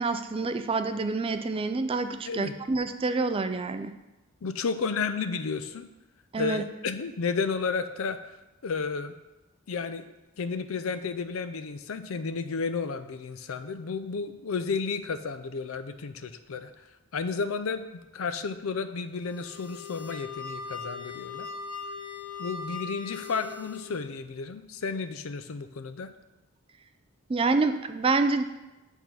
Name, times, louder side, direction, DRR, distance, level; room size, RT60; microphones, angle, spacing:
voice 1, 0.0-4.0 6.3-6.6 27.3-28.4, right 3 dB, 25° right, 9 dB, 0.3 m, -27 dB
voice 2, 4.4-5.9 6.4-8.2 8.6-9.1 9.7-10.1 10.4-16.7 17.1-21.5 22.4-26.1, left 5 dB, 75° left, 10 dB, 0.5 m, -32 dB
sound 1, 19.2-24.0, left 4 dB, 5° left, 1.5 m, -40 dB
8.2 x 3.6 x 5.9 m, 1.0 s
head